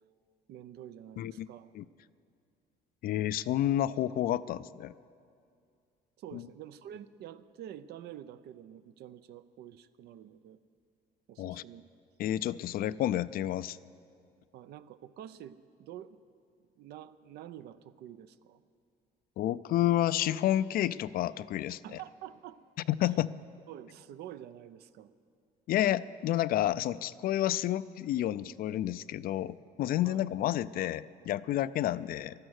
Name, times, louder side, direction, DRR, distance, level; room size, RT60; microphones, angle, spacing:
voice 1, 0.5-1.7 6.2-10.6 11.3-11.9 14.5-16.2 16.8-18.6 21.8-22.6 23.7-25.1 30.0-30.2, right 11 dB, 70° right, 14 dB, 0.6 m, -47 dB
voice 2, 1.2-1.5 1.7-1.8 3.0-4.9 6.3-6.4 11.4-11.6 12.2-13.8 19.4-21.8 22.9-23.3 25.7-32.3, left 13 dB, 60° left, 17 dB, 0.4 m, -30 dB
15.5 x 12.0 x 6.4 m, 2.3 s
cardioid pair, 110°, 17 cm